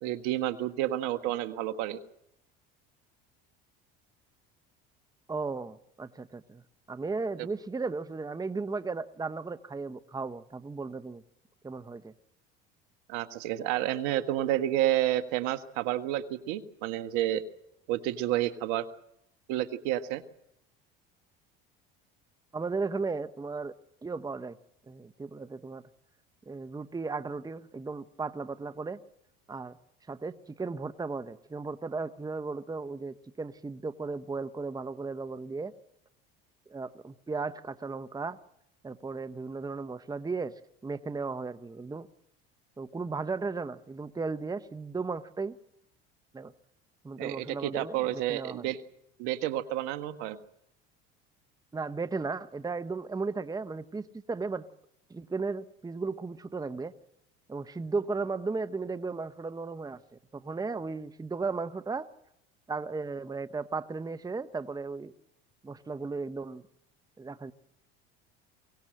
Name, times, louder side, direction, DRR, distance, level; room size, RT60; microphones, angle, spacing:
voice 1, 0.0-2.0 13.1-17.4 17.9-18.9 19.5-20.2 47.2-48.8 49.2-50.4, right 13 dB, 70° right, 11 dB, 1.5 m, -30 dB
voice 2, 5.3-6.6 6.9-11.2 11.6-12.1 22.5-23.7 24.0-24.6 24.9-25.8 26.5-29.0 29.5-29.8 30.1-35.7 36.7-38.4 38.8-40.5 40.8-42.1 42.8-45.6 46.3-46.5 47.0-48.7 51.7-54.6 55.1-56.9 57.5-62.1 62.7-65.1 65.6-66.6 67.2-67.5, right 4 dB, 10° right, 13 dB, 0.9 m, -35 dB
23.0 x 18.5 x 7.7 m, 0.80 s
hypercardioid pair, 85°, 30 cm